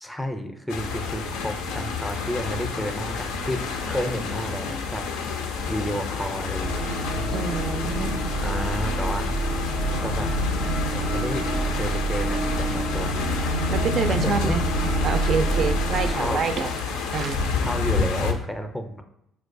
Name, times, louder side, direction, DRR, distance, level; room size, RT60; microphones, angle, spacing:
voice 1, 0.0-5.1 5.7-7.3 8.2-9.3 10.0-10.3 10.9-13.3 14.1-14.6 16.1-16.4 17.6-19.0, equal, 5° left, 5 dB, 0.4 m, -31 dB
sound 1, 0.7-18.3, left 5 dB, 90° left, 0.4 m, -29 dB
sound 2, 6.6-16.1, right 3 dB, 90° right, 0.7 m, -28 dB
voice 2, 7.3-8.3 13.7-14.6 15.0-16.7 17.1-17.5, right 5 dB, 55° right, 8 dB, 0.3 m, -27 dB
4.3 x 2.3 x 2.5 m, 0.79 s
supercardioid pair, 75°, 0 cm